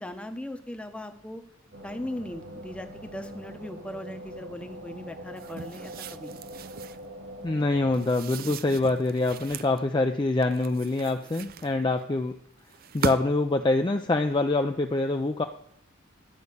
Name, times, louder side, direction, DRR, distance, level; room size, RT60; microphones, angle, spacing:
voice 1, 0.0-1.4 1.8-6.4, left 1 dB, 5° left, 6 dB, 0.8 m, -39 dB
sound 1, 1.7-8.0, equal, 65° right, 1.3 m, -43 dB
sound 2, 5.4-7.1 7.9-9.8 10.4-12.0 12.7-13.5, right 5 dB, 45° right, 0.4 m, -38 dB
voice 2, 7.4-12.3 12.9-15.4, left 2 dB, 25° left, 5 dB, 0.4 m, -25 dB
11.5 x 5.4 x 8.3 m, 0.69 s
head